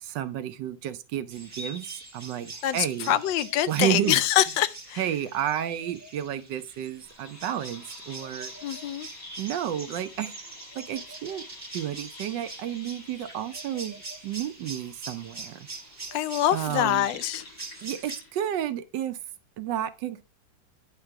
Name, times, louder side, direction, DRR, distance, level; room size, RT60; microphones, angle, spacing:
voice 1, 0.0-3.2 3.7-4.2 5.0-8.5 9.4-10.3 10.8-11.4 11.7-15.7 16.5-17.1 17.8-19.2 19.6-20.2, right 11 dB, 75° right, 1.3 m, -31 dB
sound 1, 1.3-18.2, right 3 dB, 10° right, 1.5 m, -43 dB
voice 2, 2.6-5.1 8.6-9.1 16.1-17.5, left 12 dB, 80° left, 1.3 m, -25 dB
sound 2, 7.0-18.5, left 3 dB, 60° left, 2.6 m, -49 dB
9.9 x 3.8 x 4.5 m
omnidirectional pair, 2.0 m